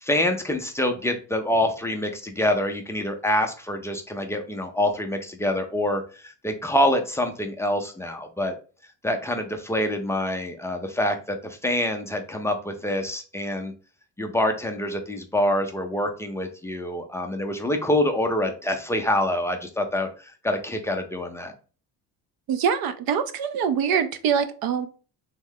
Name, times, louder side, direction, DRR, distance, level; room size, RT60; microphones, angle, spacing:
voice 1, 0.0-8.5 9.0-13.7 14.2-21.5, left 1 dB, 5° left, 4 dB, 0.3 m, -26 dB
voice 2, 22.5-24.9, right 7 dB, 60° right, 11 dB, 0.6 m, -24 dB
3.6 x 3.2 x 3.5 m, 0.37 s
cardioid pair, 155°, 40 cm